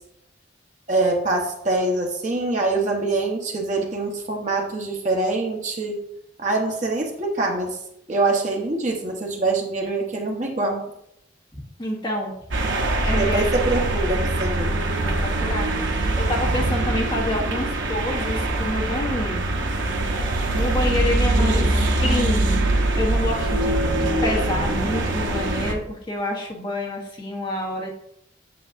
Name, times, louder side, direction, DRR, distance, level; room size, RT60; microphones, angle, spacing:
voice 1, 0.9-6.0 6.4-7.8 8.1-10.8 13.1-14.7 21.3-21.7, right 2 dB, 40° right, 0 dB, 1.1 m, -24 dB
voice 2, 11.8-13.5 15.0-19.5 20.5-21.6 22.0-22.6 23.0-27.9, left 1 dB, 25° left, -1 dB, 1.1 m, -28 dB
sound 1, 12.5-25.7, right 2 dB, 80° right, 0.9 m, -23 dB
7.8 x 6.8 x 2.6 m, 0.77 s
head